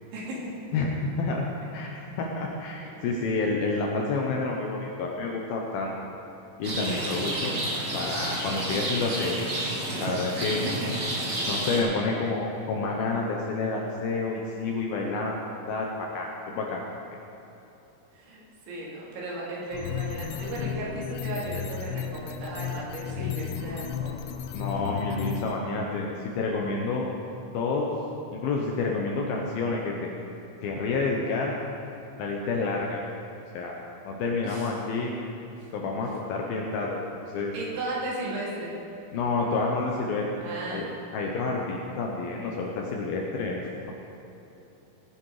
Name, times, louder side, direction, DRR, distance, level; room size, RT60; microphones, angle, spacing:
voice 1, 0.1-0.5 3.7-3.8 10.3-10.9 18.1-24.2 34.4-34.7 37.5-38.7 40.4-40.8, right 2 dB, 80° right, -5 dB, 5.0 m, -35 dB
voice 2, 0.7-1.5 1.7-1.9 2.2-5.9 6.6-7.6 7.9-9.4 10.0-10.6 11.5-15.4 15.7-16.3 16.5-16.9 24.5-27.1 27.5-28.0 28.3-30.1 30.6-31.5 32.2-33.1 33.5-35.3 35.7-37.5 39.1-40.3 40.7-40.9 41.1-43.6, left 3 dB, 75° left, -1 dB, 2.3 m, -29 dB
Rain, 6.6-11.8, right 1 dB, 60° right, 1.1 m, -30 dB
sound 1, 19.7-25.5, left 9 dB, 90° left, 3.1 m, -34 dB
17.5 x 9.4 x 4.9 m, 3.0 s
omnidirectional pair, 5.3 m